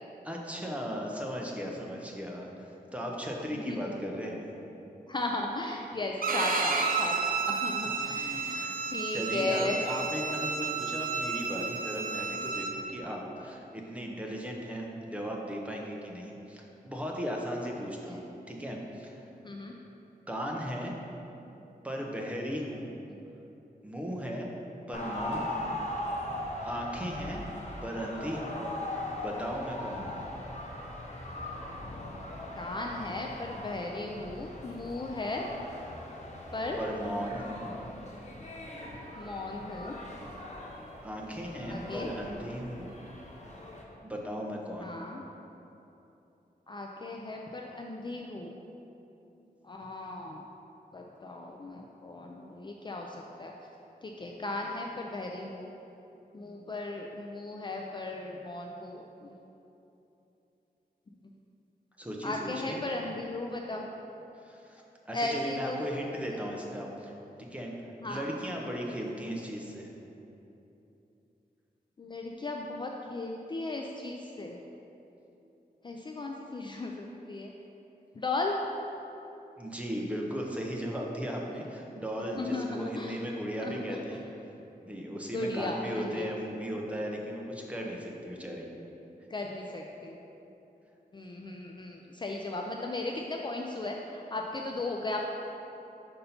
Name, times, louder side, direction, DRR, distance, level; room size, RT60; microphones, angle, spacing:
voice 1, 0.2-4.5 8.5-19.2 20.3-20.9 21.8-22.9 23.8-24.5 24.9-25.8 26.6-27.5 27.8-28.6 29.2-30.2 36.8-37.7 41.0-42.9 44.0-45.1 62.0-62.8 64.4-67.1 67.4-69.9 79.6-84.2 84.8-88.7, equal, 10° right, -1 dB, 0.7 m, -37 dB
voice 2, 5.1-9.8 18.1-18.2 19.4-19.7 32.6-35.5 36.5-36.8 39.2-39.9 41.7-42.1 44.8-45.2 46.7-48.5 49.6-50.5 50.9-53.5 54.0-55.7 56.3-59.4 62.2-63.9 65.1-65.8 68.0-68.2 72.0-74.6 75.8-77.5 78.2-78.6 82.3-83.2 83.6-84.0 85.2-86.3 89.3-90.1 91.1-95.2, left 2 dB, 30° left, 0 dB, 0.3 m, -36 dB
Bowed string instrument, 6.2-12.7, right 4 dB, 60° right, 0.6 m, -31 dB
sound 1, 24.9-43.8, left 1 dB, 45° left, 0.8 m, -40 dB
5.5 x 5.3 x 4.3 m, 3.0 s
wide cardioid pair, 150°, 16 cm